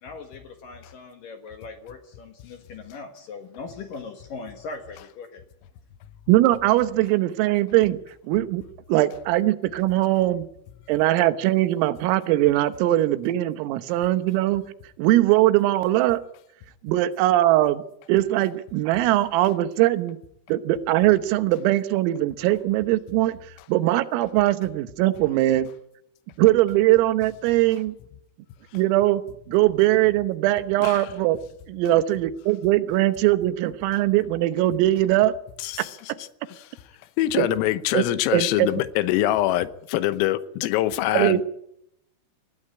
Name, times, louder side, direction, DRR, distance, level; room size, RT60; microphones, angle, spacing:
voice 1, 0.0-5.4, left 4 dB, 65° left, 2.3 m, -40 dB
voice 2, 6.3-8.0 8.3-8.6 8.9-10.5 10.9-14.6 15.0-16.2 16.8-17.8 18.1-20.2 20.5-25.7 26.4-28.0 28.7-29.2 29.5-31.4 31.7-35.4 35.8-36.2 37.4-37.5 37.9-38.0 38.3-38.7 41.1-41.4, right 15 dB, 85° right, 3.7 m, -21 dB
voice 3, 35.6-36.0 36.5-36.7 37.2-41.4, left 14 dB, 90° left, 3.7 m, -24 dB
21.0 x 16.0 x 9.8 m
omnidirectional pair, 5.9 m